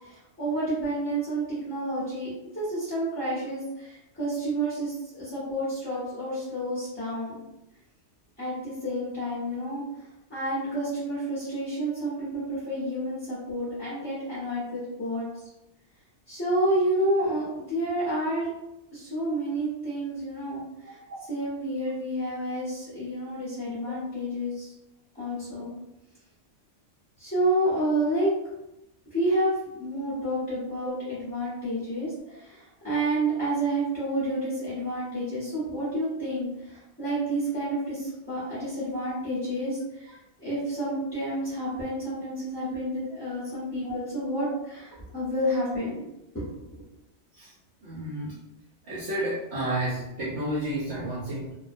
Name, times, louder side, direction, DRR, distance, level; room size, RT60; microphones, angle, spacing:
voice 1, 0.0-7.4 8.4-9.8 10.3-15.3 16.3-18.5 18.9-21.0 21.3-24.7 25.1-25.7 27.2-28.3 29.1-29.5 29.8-40.1 40.4-46.1 46.3-46.4, right 1 dB, 10° left, -12 dB, 0.8 m, -29 dB
voice 2, 47.8-48.3 48.9-51.6, right 1 dB, 70° right, -7 dB, 0.9 m, -31 dB
2.3 x 2.2 x 2.5 m, 0.90 s
omnidirectional pair, 1.2 m